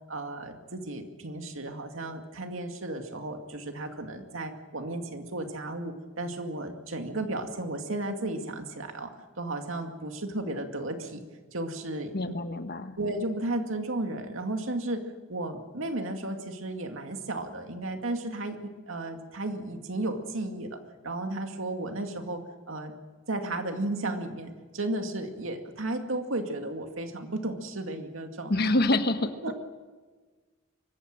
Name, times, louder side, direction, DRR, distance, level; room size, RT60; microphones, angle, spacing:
voice 1, 0.1-11.2 11.5-12.3 13.0-15.0 15.3-20.8 21.0-22.9 23.3-28.8 29.4-29.7, right 2 dB, 85° right, 5 dB, 2.3 m, -34 dB
voice 2, 12.1-12.9 28.5-29.3, left 2 dB, 50° left, 9 dB, 1.3 m, -26 dB
24.0 x 15.0 x 9.0 m, 1.4 s
head